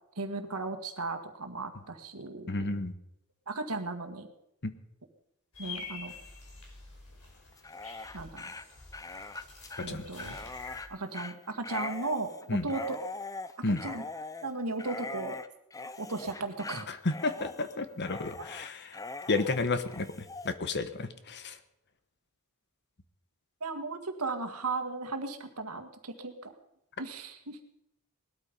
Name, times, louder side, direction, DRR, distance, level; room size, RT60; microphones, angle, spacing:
voice 1, 0.2-2.8 3.5-4.3 5.6-6.1 8.1-8.5 9.8-10.4 10.9-13.0 13.6-14.0 14.4-15.4 16.0-16.9 18.4-18.5 23.6-26.5 27.0-27.6, right 3 dB, 80° right, 7 dB, 1.9 m, -36 dB
voice 2, 2.5-2.9 4.6-4.7 9.9-10.4 12.5-12.7 13.6-13.8 16.9-19.0 19.3-21.6, left 3 dB, 50° left, 11 dB, 1.2 m, -32 dB
sound 1, 5.5-10.8, left 4 dB, 70° left, 5.5 m, -47 dB
Dog, 7.5-20.5, left 3 dB, 15° left, 0.6 m, -42 dB
19.5 x 13.0 x 5.4 m, 0.80 s
head